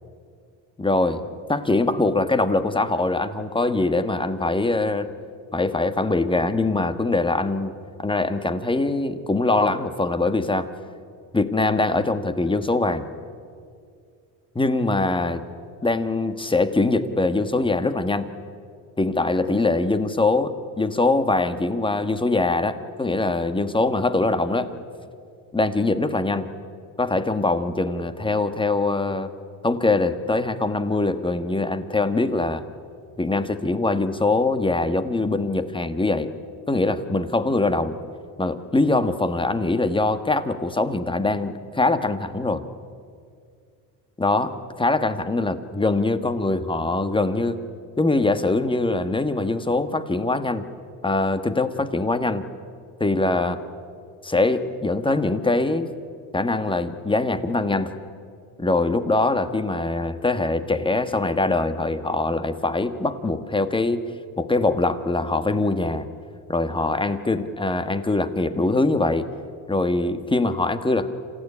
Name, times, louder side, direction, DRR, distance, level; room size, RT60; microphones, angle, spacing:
voice 1, 0.8-1.2 1.5-5.1 5.5-10.7 11.3-13.1 14.5-15.4 15.8-18.3 19.0-24.7 25.5-26.5 27.0-29.3 29.6-32.6 33.2-36.3 36.7-38.0 38.4-42.6 44.2-47.6 48.0-50.7 51.0-52.4 53.0-53.6 54.2-55.9 56.3-57.9 58.6-64.0 64.4-66.1 66.5-69.3 69.7-71.1, left 2 dB, 10° left, 11 dB, 1.4 m, -23 dB
27.0 x 15.5 x 9.9 m, 2.3 s
cardioid pair, 105°, 41 cm